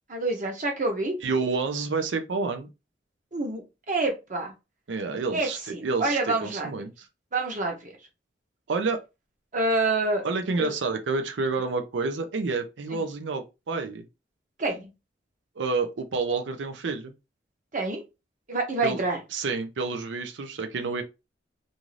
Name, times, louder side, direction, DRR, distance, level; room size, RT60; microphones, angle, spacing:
voice 1, 0.1-1.2 3.3-4.5 5.3-6.7 7.3-7.9 9.5-10.2 10.6-10.7 12.9-13.0 14.6-14.9 17.7-18.0 18.5-19.2, right 2 dB, 45° right, 0.8 m, -27 dB
voice 2, 1.2-2.7 4.9-7.1 8.7-9.0 10.2-14.0 15.6-17.1 18.8-19.0 19.3-21.0, right 4 dB, 85° right, 0.5 m, -29 dB
2.6 x 2.4 x 3.1 m
head